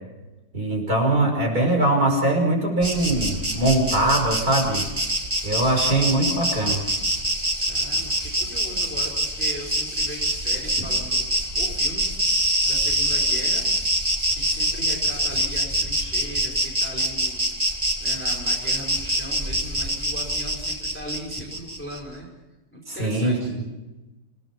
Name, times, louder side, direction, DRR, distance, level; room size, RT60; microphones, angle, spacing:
voice 1, 0.5-4.9 5.4-6.9 22.9-23.6, right 1 dB, 55° right, 1 dB, 6.0 m, -22 dB
Insect, 2.8-22.0, right 1 dB, 15° right, 2.5 m, -25 dB
voice 2, 7.6-11.2 11.5-13.7 14.3-22.3 22.7-23.5, equal, 5° left, -1 dB, 4.5 m, -38 dB
28.5 x 18.0 x 5.9 m, 1.1 s
omnidirectional pair, 1.9 m